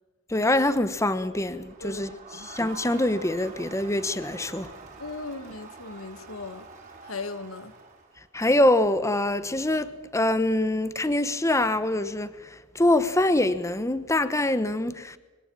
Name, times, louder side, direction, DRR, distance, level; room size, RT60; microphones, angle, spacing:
voice 1, 0.3-2.1 2.4-4.7 8.3-12.3 12.7-15.2, left 1 dB, 15° left, 1.0 m, -24 dB
Crowd, 1.4-8.3, right 4 dB, 35° right, 4.9 m, -46 dB
voice 2, 5.0-6.7 7.0-7.7, left 3 dB, 85° left, 1.8 m, -37 dB
23.5 x 18.0 x 8.7 m
head